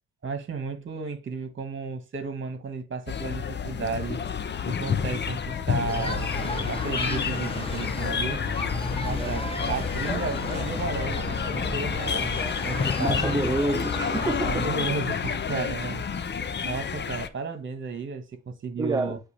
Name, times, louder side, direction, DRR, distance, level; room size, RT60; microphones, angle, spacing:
voice 1, 0.2-4.2 4.7-8.4 9.0-13.4 14.5-16.0 16.6-19.2, right 4 dB, 40° right, 1.7 m, -33 dB
sound 1, 3.1-17.3, left 7 dB, 35° left, 0.8 m, -30 dB
sound 2, 5.9-14.7, left 2 dB, 20° left, 1.5 m, -33 dB
voice 2, 9.2-9.8 12.9-14.7 18.8-19.2, right 2 dB, 10° right, 0.5 m, -29 dB
8.3 x 2.8 x 4.8 m
cardioid pair, 90°, 30 cm